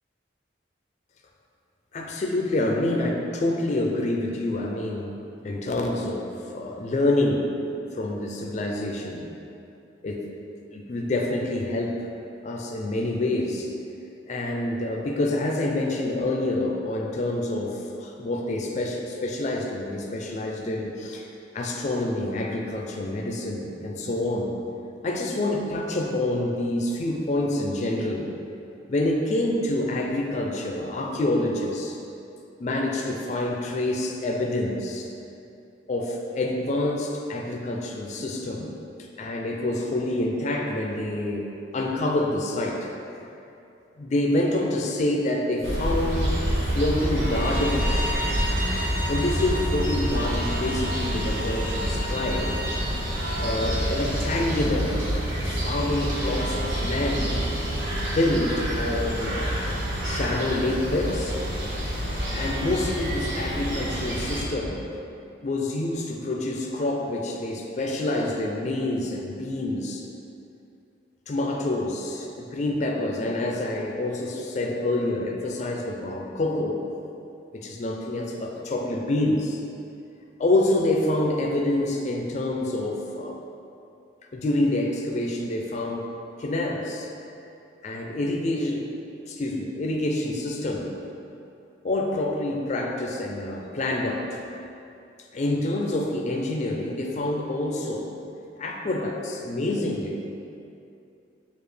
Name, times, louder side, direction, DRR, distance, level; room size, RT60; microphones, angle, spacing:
voice 1, 1.9-5.2 5.4-7.5 7.9-9.3 10.0-10.2 10.7-11.9 12.4-13.7 14.3-21.3 21.5-24.5 25.0-28.3 28.9-32.0 32.6-35.1 35.9-38.7 39.2-41.5 41.7-42.9 44.0-46.4 46.7-48.1 49.1-52.6 53.4-55.1 55.5-57.5 58.0-59.6 60.0-61.4 62.3-64.8 65.4-70.0 71.3-76.8 77.5-79.6 80.4-83.4 84.3-86.1 86.4-87.1 87.8-88.9 89.3-90.9 91.8-94.4 95.3-98.1 98.6-100.2, left 1 dB, 40° left, 0 dB, 0.4 m, -27 dB
sound 1, 45.6-64.5, equal, 90° right, 0.9 m, -27 dB
Bowed string instrument, 47.3-52.8, equal, 55° right, 0.6 m, -34 dB
6.8 x 2.4 x 3.2 m, 2.7 s
head